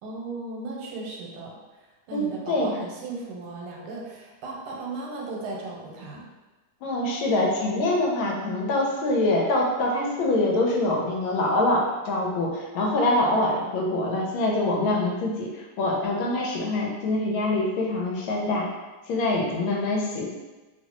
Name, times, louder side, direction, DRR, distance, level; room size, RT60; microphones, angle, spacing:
voice 1, 0.0-1.6 2.1-6.2, right 3 dB, 85° right, -2 dB, 1.6 m, -36 dB
voice 2, 2.1-2.7 6.8-18.7 19.1-20.3, left 2 dB, 75° left, -1 dB, 1.3 m, -24 dB
3.1 x 2.9 x 2.9 m, 1.2 s
omnidirectional pair, 2.4 m